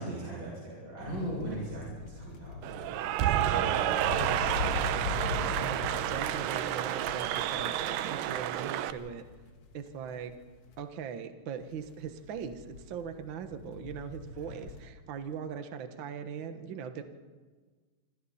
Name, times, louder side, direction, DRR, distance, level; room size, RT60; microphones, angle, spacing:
voice 1, 0.0-2.7 3.2-5.8 14.2-14.6, right 1 dB, 35° right, -5 dB, 8.1 m, -40 dB
sound 1, 1.0-10.8 11.7-14.9, left 4 dB, 45° left, 2.2 m, -40 dB
Cheering / Applause, 2.6-8.9, right 12 dB, 75° right, 2.3 m, -30 dB
voice 2, 5.6-9.2 9.7-10.4 10.8-17.0, right 7 dB, 60° right, 8 dB, 1.2 m, -40 dB
27.0 x 26.0 x 4.3 m, 1.5 s
omnidirectional pair, 4.1 m